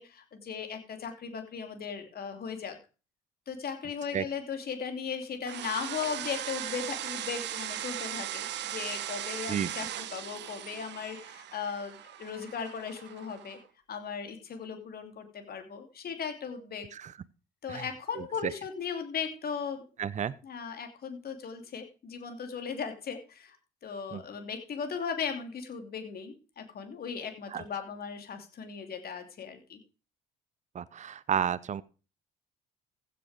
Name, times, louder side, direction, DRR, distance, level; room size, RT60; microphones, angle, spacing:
voice 1, 0.0-2.8 3.5-13.6 13.9-16.9 17.6-19.8 20.4-23.6 23.8-29.8, left 6 dB, 50° left, 2.9 m, -37 dB
sound 1, 5.5-13.6, right 12 dB, 60° right, 1.1 m, -38 dB
voice 2, 20.0-20.3 24.1-24.2 27.5-27.6 30.7-31.8, right 8 dB, 35° right, 0.7 m, -31 dB
15.5 x 6.8 x 5.0 m
hypercardioid pair, 55°, 21 cm